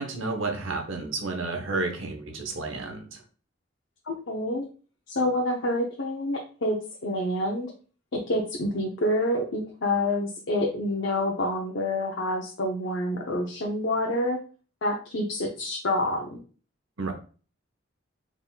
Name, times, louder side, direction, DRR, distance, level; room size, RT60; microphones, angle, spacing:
voice 1, 0.0-3.2 17.0-17.1, right 3 dB, 85° right, 4 dB, 0.8 m, -31 dB
voice 2, 4.1-4.6 5.1-6.8 7.0-7.7 8.1-14.4 14.8-16.4, left 1 dB, 65° left, -1 dB, 0.6 m, -27 dB
4.0 x 3.6 x 2.2 m, 0.38 s
head